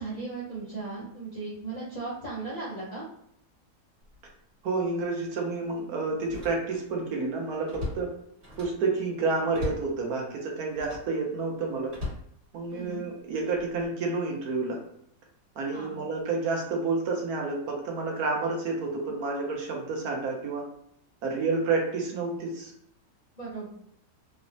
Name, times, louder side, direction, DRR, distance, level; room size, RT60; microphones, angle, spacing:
voice 1, 0.0-3.0 12.7-13.1 15.7-16.0 23.4-23.7, right 3 dB, 45° left, -7 dB, 0.5 m, -37 dB
Slam, 4.0-4.3 4.7-4.8 6.2-7.0 7.3-8.9 9.5-10.0 10.7-11.2 11.9-13.0 13.5-13.9, left 2 dB, 45° right, 1.6 m, -38 dB
voice 2, 4.6-8.1 8.6-11.9 12.5-14.8 15.6-20.6 21.2-22.7, right 3 dB, 75° right, 0 dB, 1.2 m, -29 dB
3.2 x 2.0 x 2.5 m, 0.71 s
omnidirectional pair, 1.7 m